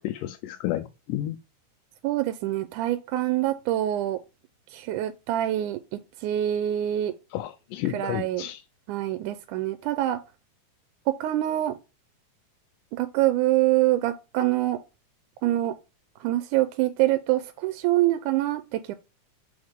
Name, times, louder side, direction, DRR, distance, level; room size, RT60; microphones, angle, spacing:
voice 1, 0.0-1.4 7.3-8.6, left 13 dB, 85° left, 2.1 m, -31 dB
voice 2, 2.0-4.2 4.7-7.2 7.9-8.5 8.9-10.2 11.1-11.8 12.9-14.8 15.4-15.8 16.2-18.9, right 14 dB, 80° right, 2.0 m, -25 dB
6.4 x 4.6 x 3.5 m
omnidirectional pair, 3.7 m